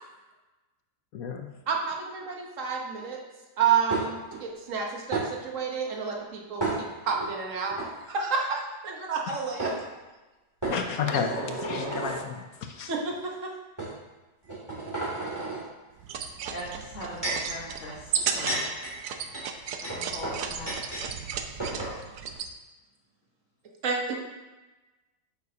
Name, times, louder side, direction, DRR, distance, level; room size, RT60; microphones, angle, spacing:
voice 1, 1.1-1.5 10.7-12.9, left 6 dB, 65° left, 4 dB, 1.1 m, -32 dB
voice 2, 1.7-3.2 3.6-7.8 8.1-9.7 12.9-13.5 23.8-24.1, right 6 dB, 50° right, 0 dB, 1.4 m, -29 dB
sound 1, 3.9-4.4 5.1-5.3 6.6-7.3 7.7-7.9 9.2-9.3 9.6-9.8 10.6-12.2 13.0-13.1 13.8-13.9 14.4-15.6 16.7-17.5 18.1-21.1 21.3-21.4 21.6-21.9, right 2 dB, 15° right, 2.6 m, -32 dB
sound 2, 16.0-22.5, right 6 dB, 65° right, 0.9 m, -34 dB
voice 3, 16.5-18.9 19.8-21.1, equal, 45° left, -8 dB, 1.8 m, -41 dB
9.3 x 6.7 x 2.8 m, 1.1 s
omnidirectional pair, 1.8 m